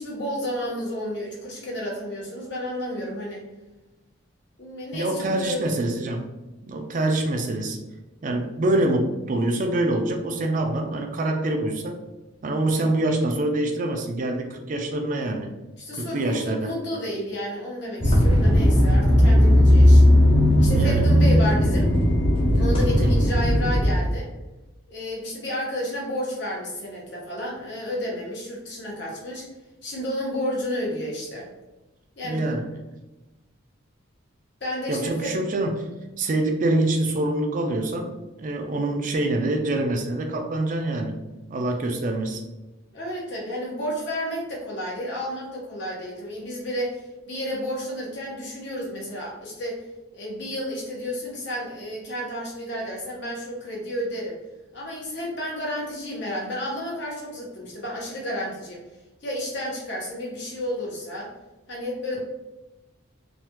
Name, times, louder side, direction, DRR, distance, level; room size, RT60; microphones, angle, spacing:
voice 1, 0.0-3.5 4.6-5.6 15.8-20.0 20.6-21.9 22.5-24.3 24.9-29.5 29.8-31.5 32.2-32.5 34.6-35.3 42.9-49.8 50.1-54.4 54.7-58.8 59.2-61.3 61.7-62.2, equal, 55° left, -3 dB, 1.0 m, -31 dB
voice 2, 4.9-6.2 6.6-7.8 8.2-12.0 12.4-15.5 16.0-16.7 20.7-21.1 23.0-23.2 32.2-32.7 34.9-35.9 36.2-41.1 41.5-42.4, right 2 dB, 40° right, 3 dB, 0.3 m, -25 dB
sound 1, 18.0-23.9, equal, 25° left, 0.6 m, -17 dB
3.2 x 2.2 x 2.8 m, 1.1 s
head